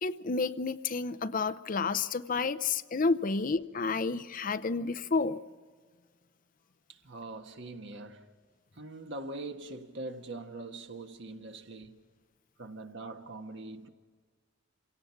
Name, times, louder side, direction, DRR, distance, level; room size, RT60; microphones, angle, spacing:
voice 1, 0.0-5.4, left 4 dB, 40° left, 0.6 m, -30 dB
voice 2, 6.9-8.3 8.7-11.9 12.6-13.9, right 2 dB, 60° right, 1.6 m, -42 dB
27.5 x 17.5 x 5.8 m
head